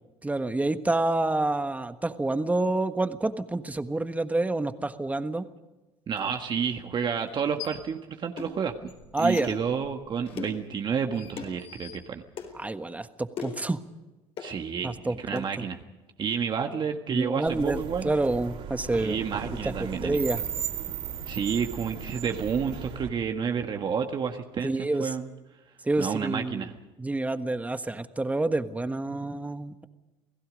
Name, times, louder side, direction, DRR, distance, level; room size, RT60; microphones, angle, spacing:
voice 1, 0.2-5.5 9.1-9.5 12.5-13.8 14.8-15.7 17.1-19.2 19.6-19.7 20.0-20.4 24.6-25.1 25.8-26.7 27.0-29.8, right 2 dB, 10° right, 9 dB, 1.4 m, -28 dB
sound 1, 6.1-6.2 7.3-7.9 8.3-12.7, left 11 dB, 85° left, 4.1 m, -47 dB
voice 2, 6.1-8.9 9.2-12.2 14.4-15.8 16.2-18.1 19.0-20.2 21.3-24.7 25.0-25.3 26.0-26.7, right 6 dB, 40° right, 4 dB, 1.6 m, -30 dB
sound 2, 8.4-8.6 9.4-9.6 10.4-10.7 11.4-11.6 12.4-12.5 13.4-13.7 14.4-14.5 15.4-15.5, left 6 dB, 50° left, 4.2 m, -37 dB
sound 3, 17.5-23.1, right 7 dB, 60° right, 4.2 m, -36 dB
28.5 x 17.5 x 5.2 m, 1.1 s
supercardioid pair, 95°, 12 cm